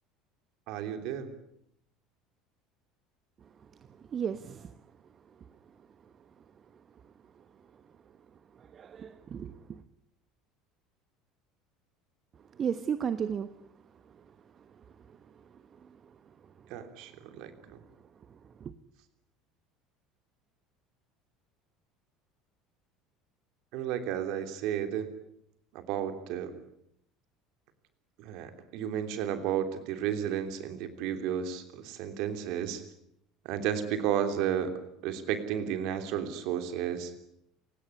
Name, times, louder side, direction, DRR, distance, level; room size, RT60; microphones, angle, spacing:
voice 1, 0.7-1.3 16.7-17.8 23.7-25.1 25.7-26.5 28.2-32.8 33.4-34.7 35.0-37.3, right 9 dB, 55° right, 3.1 m, -33 dB
voice 2, 4.1-4.7 8.7-9.8 12.6-13.5 18.6-18.7, right 7 dB, 35° right, 1.1 m, -33 dB
28.5 x 17.5 x 9.8 m
figure-of-eight pair, 65°, 0 cm